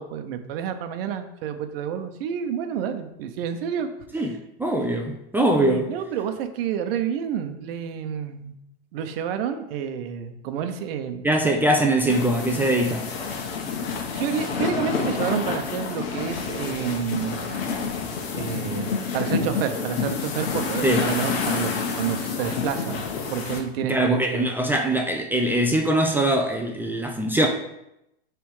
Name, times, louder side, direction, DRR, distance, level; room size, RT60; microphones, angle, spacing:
voice 1, 0.0-4.3 5.5-8.5 8.9-11.2 14.1-17.5 18.1-23.0 23.3-24.5, right 8 dB, 65° right, 8 dB, 0.9 m, -29 dB
voice 2, 4.1-5.9 11.2-13.1 20.8-21.1 23.8-27.5, right 1 dB, 5° right, 1 dB, 0.4 m, -22 dB
sound 1, 12.1-23.6, left 5 dB, 70° left, 1.3 m, -28 dB
7.0 x 3.4 x 4.8 m, 0.85 s
hypercardioid pair, 125°, 32 cm